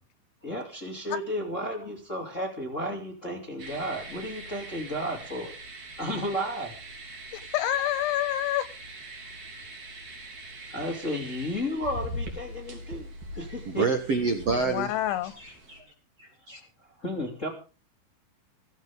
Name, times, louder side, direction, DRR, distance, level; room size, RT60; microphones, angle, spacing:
voice 1, 0.4-6.8 10.7-13.1 13.4-13.9 17.0-17.5, equal, 20° left, 1 dB, 3.0 m, -33 dB
sound 1, 3.6-15.8, equal, 40° right, 4.2 m, -42 dB
voice 2, 7.3-8.7 14.6-15.3, left 12 dB, 85° left, 14 dB, 3.5 m, -27 dB
voice 3, 13.3-14.9 15.4-15.8 16.2-16.6, right 4 dB, 60° right, 4 dB, 1.6 m, -28 dB
16.5 x 15.5 x 3.7 m, 0.34 s
omnidirectional pair, 5.2 m